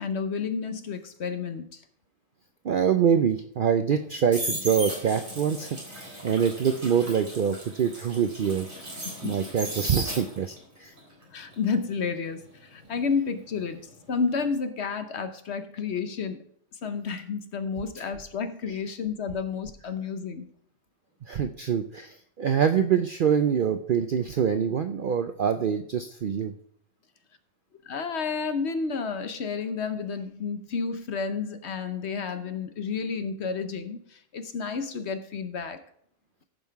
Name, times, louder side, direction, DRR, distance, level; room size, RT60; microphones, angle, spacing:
voice 1, 0.0-1.8 9.0-9.4 11.3-13.8 14.1-16.4 16.8-20.5 27.8-35.8, left 5 dB, 55° left, 9 dB, 1.1 m, -31 dB
voice 2, 2.6-8.7 9.0-10.9 21.3-26.5, right 7 dB, 60° right, 8 dB, 0.5 m, -25 dB
sound 1, 3.9-10.6 11.0-13.9 14.1-14.5, right 1 dB, 40° right, 3.7 m, -37 dB
15.0 x 5.6 x 4.6 m, 0.65 s
omnidirectional pair, 1.4 m